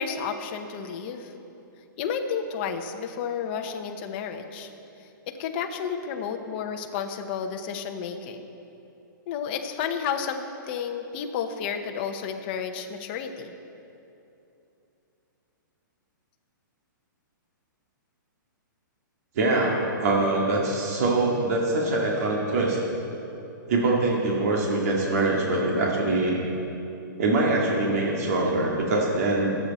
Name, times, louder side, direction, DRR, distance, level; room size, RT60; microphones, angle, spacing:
voice 1, 0.0-1.3 2.0-4.7 5.3-8.4 9.3-13.5, left 7 dB, 30° left, 5 dB, 0.9 m, -31 dB
voice 2, 19.4-22.8 23.7-26.4 27.2-29.6, right 2 dB, 50° right, -2 dB, 2.1 m, -24 dB
21.0 x 8.5 x 4.2 m, 2.8 s
hypercardioid pair, 165°, 11 cm